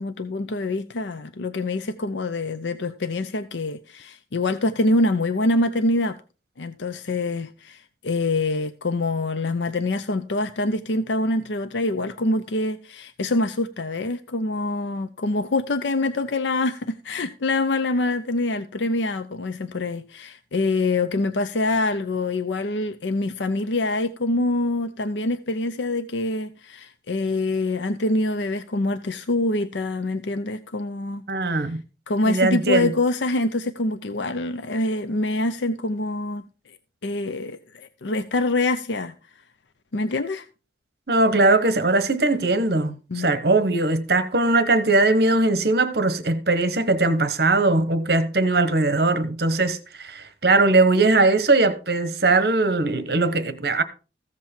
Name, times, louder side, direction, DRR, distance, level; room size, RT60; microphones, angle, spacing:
voice 1, 0.0-6.2 6.6-31.7 32.1-36.4 37.0-39.1 39.9-40.5 42.9-43.3, left 2 dB, 90° left, 0.7 m, -25 dB
voice 2, 31.3-31.8 32.2-32.9 41.1-53.8, right 2 dB, 60° right, 1.1 m, -20 dB
14.5 x 7.5 x 4.4 m
head